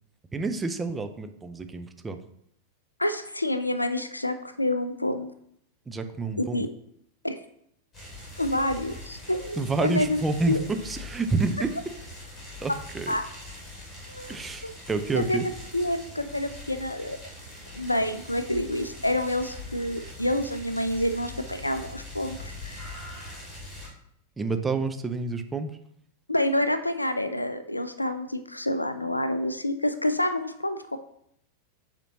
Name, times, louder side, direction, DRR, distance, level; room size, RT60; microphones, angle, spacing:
voice 1, 0.3-2.2 5.9-6.6 9.6-10.6 10.8-11.7 12.6-13.1 14.3-15.5 24.4-25.7, right 3 dB, 15° right, 7 dB, 0.5 m, -29 dB
voice 2, 3.0-5.3 6.4-6.7 7.2-7.4 8.4-10.2 10.5-10.6 13.1-13.2 14.1-14.3 14.6-14.7 15.1-17.2 17.8-22.9 26.3-31.0, left 1 dB, 85° left, 10 dB, 0.3 m, -28 dB
sound 1, 7.9-23.9, left 2 dB, 15° left, 2.4 m, -42 dB
7.9 x 4.3 x 2.8 m, 0.72 s
figure-of-eight pair, 90°, 0 cm